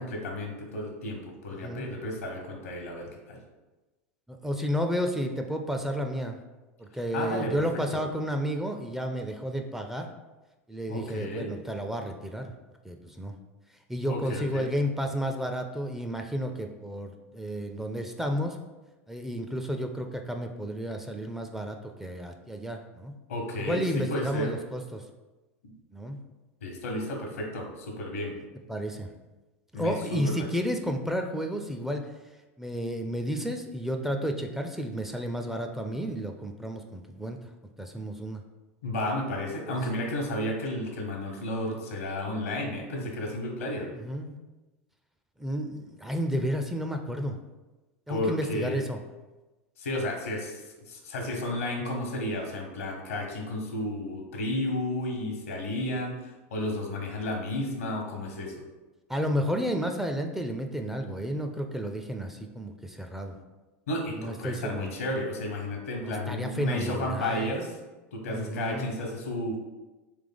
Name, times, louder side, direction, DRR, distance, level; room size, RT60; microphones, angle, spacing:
voice 1, 0.0-3.4 7.1-7.6 7.9-8.0 10.9-11.5 14.1-14.7 23.3-24.5 25.6-25.7 26.6-28.4 29.7-30.5 38.8-43.9 48.1-48.8 49.8-58.5 63.9-67.8 68.1-69.6, left 1 dB, 90° left, 2 dB, 1.0 m, -32 dB
voice 2, 4.3-6.4 6.8-10.1 10.7-12.5 12.8-13.3 13.9-18.6 19.1-23.1 23.6-25.0 25.9-26.2 28.7-29.1 29.7-32.0 32.6-37.4 37.8-38.4 39.7-39.8 43.9-44.3 45.4-47.3 48.1-49.0 59.1-63.4 64.1-64.9 66.0-67.5 68.3-68.9, equal, 5° right, 4 dB, 0.4 m, -32 dB
3.3 x 3.3 x 3.8 m, 1.1 s
hypercardioid pair, 100°, 7 cm